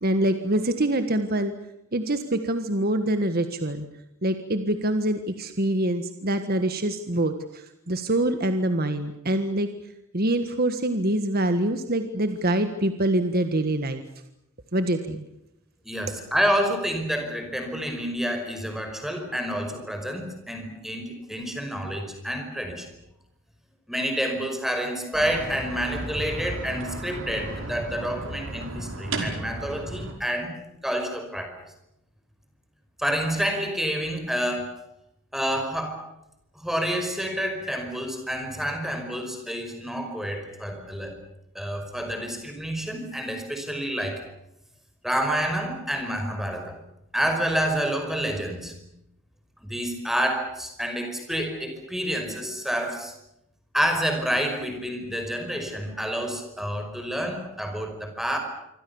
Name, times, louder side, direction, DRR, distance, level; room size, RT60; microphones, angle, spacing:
voice 1, 0.0-1.5 1.9-3.9 4.2-9.7 10.1-14.0 14.7-15.2, right 1 dB, 45° right, 8 dB, 1.5 m, -25 dB
voice 2, 15.8-22.9 23.9-30.5 30.8-31.6 33.0-34.8 35.3-36.1 36.6-41.1 41.6-44.2 45.0-46.8 47.1-48.7 49.6-53.1 53.7-58.4, equal, ahead, 5 dB, 5.4 m, -28 dB
sound 1, 25.1-30.1, right 2 dB, 65° right, 5.2 m, -34 dB
26.0 x 25.0 x 7.1 m, 0.85 s
head